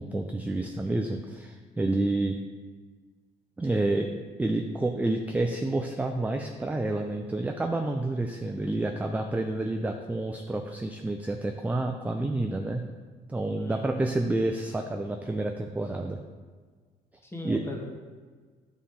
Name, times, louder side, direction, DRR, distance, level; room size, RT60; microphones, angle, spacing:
voice 1, 0.0-2.4 3.6-4.1 4.4-12.8 13.3-16.2 17.4-17.6, right 2 dB, 10° right, 4 dB, 0.4 m, -29 dB
voice 2, 13.6-14.0 17.2-17.9, left 1 dB, 15° left, 0 dB, 1.5 m, -39 dB
9.7 x 4.2 x 3.8 m, 1.5 s
cardioid pair, 110°, 17 cm